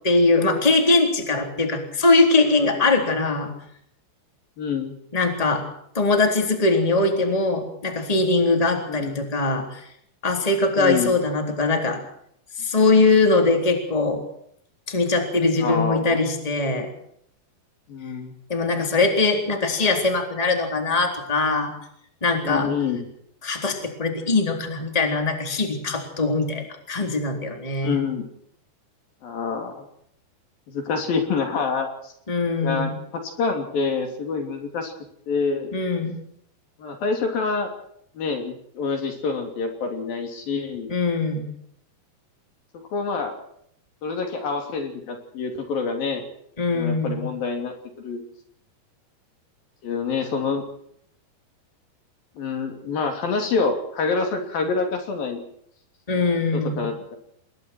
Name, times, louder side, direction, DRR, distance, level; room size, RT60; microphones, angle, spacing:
voice 1, 0.0-3.5 5.1-5.6 5.9-9.8 10.2-12.0 12.6-14.2 14.9-16.9 18.5-21.7 22.2-22.7 23.4-28.0 32.3-32.9 35.7-36.2 40.9-41.4 46.6-47.3 56.1-56.8, left 3 dB, 10° left, 3 dB, 3.5 m, -21 dB
voice 2, 4.6-5.0 8.9-9.2 10.8-11.1 15.6-16.2 17.9-18.3 22.4-23.1 27.8-28.3 29.2-29.9 30.7-32.1 32.6-34.9 35.3-35.7 36.8-37.7 38.1-40.9 42.7-43.4 44.0-46.2 46.7-48.2 49.8-50.6 52.4-55.4 56.5-57.2, left 5 dB, 65° left, 4 dB, 4.7 m, -27 dB
27.5 x 21.5 x 4.6 m, 0.70 s
omnidirectional pair, 4.6 m